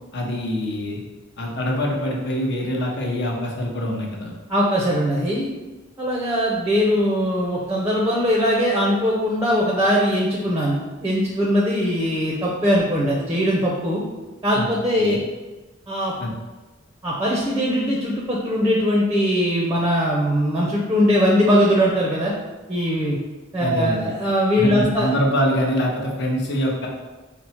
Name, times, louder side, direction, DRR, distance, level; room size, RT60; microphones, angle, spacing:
voice 1, 0.1-1.0 1.4-4.3 14.5-14.7 15.0-15.2 16.2-16.3 23.6-24.1 24.6-26.9, equal, 60° left, -1 dB, 0.8 m, -24 dB
voice 2, 4.5-5.5 6.0-14.0 14.4-15.1 15.9-16.1 17.0-22.3 22.7-23.2 23.5-25.1, equal, 15° right, -3 dB, 0.5 m, -20 dB
4.3 x 2.0 x 4.2 m, 1.2 s
head